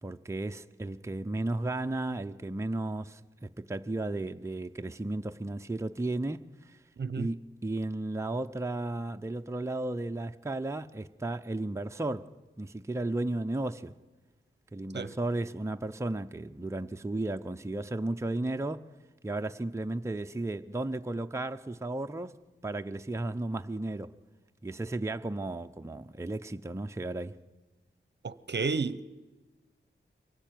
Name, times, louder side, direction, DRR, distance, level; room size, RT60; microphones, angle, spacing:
voice 1, 0.0-6.8 7.2-12.3 12.6-14.0 14.7-18.9 19.2-22.4 22.6-24.1 24.6-27.4, right 2 dB, 15° right, 0.6 m, -34 dB
voice 2, 28.2-29.1, right 4 dB, 55° right, 0.8 m, -32 dB
23.5 x 15.0 x 9.2 m
wide cardioid pair, 95°, 21 cm